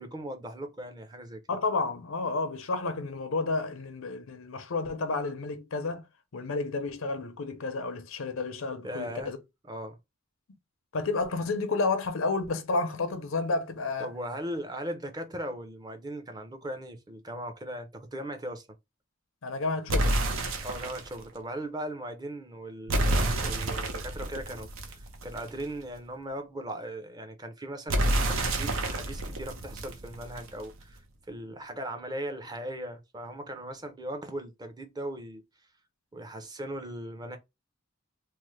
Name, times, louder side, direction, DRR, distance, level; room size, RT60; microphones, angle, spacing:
voice 1, 0.0-1.4 8.8-9.3 9.6-10.0 14.0-18.7 20.6-31.0 31.3-35.4 36.1-37.4, right 1 dB, 20° right, 0.5 m, -38 dB
voice 2, 1.5-6.0 6.3-9.4 10.9-14.1 19.4-20.2, left 3 dB, 90° left, 0.6 m, -31 dB
sound 1, 19.9-21.1 22.9-25.6 27.9-30.6, right 1 dB, 80° right, 0.6 m, -29 dB
3.1 x 2.0 x 3.1 m
head